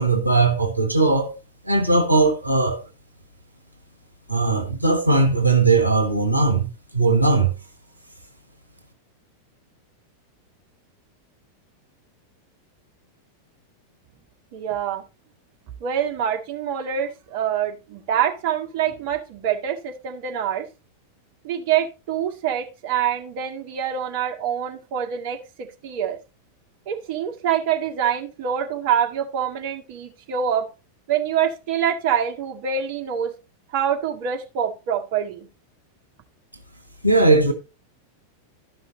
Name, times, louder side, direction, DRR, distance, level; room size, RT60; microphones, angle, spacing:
voice 1, 0.0-1.3 1.6-2.8 4.3-7.5 37.0-37.5, right 3 dB, 85° right, 1.4 m, -19 dB
voice 2, 14.5-15.0 15.8-20.7 21.4-26.2 26.9-30.7 31.1-33.3 33.7-35.5, right 9 dB, 45° right, 1.8 m, -25 dB
13.0 x 5.7 x 4.0 m
figure-of-eight pair, 90°, 0 cm